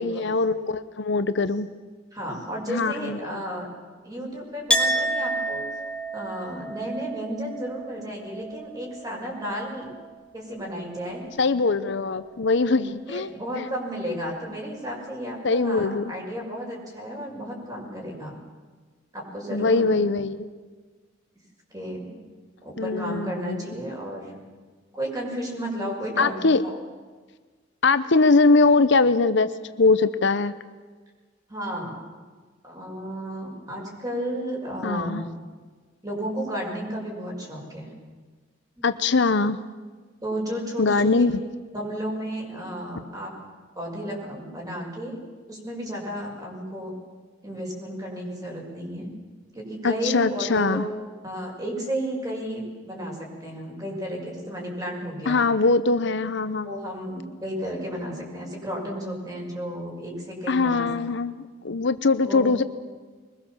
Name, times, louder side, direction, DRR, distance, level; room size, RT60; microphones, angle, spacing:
voice 1, 0.0-1.7 2.7-3.4 11.4-13.3 13.6-13.7 15.4-16.1 19.5-20.5 22.8-23.7 26.2-26.6 27.8-29.5 29.8-30.5 34.8-35.2 38.8-39.6 40.8-41.4 49.8-50.9 55.3-56.7 60.5-62.6, left 3 dB, 65° left, 12 dB, 0.8 m, -22 dB
voice 2, 2.1-3.7 4.0-5.6 6.1-9.9 10.3-11.2 13.1-18.4 19.1-20.0 21.7-22.2 22.6-24.4 24.9-26.8 31.5-31.9 32.6-35.3 36.0-37.9 38.8-38.9 40.2-41.3 41.7-43.3 43.7-45.2 45.5-46.9 47.4-49.1 49.5-50.9 51.2-55.4 56.6-60.9 62.2-62.5, equal, 20° right, -1 dB, 6.2 m, -33 dB
Chink clink, 4.7-10.2 10.5-11.4, right 1 dB, 5° left, 2.8 m, -30 dB
23.0 x 21.0 x 7.3 m, 1.4 s
head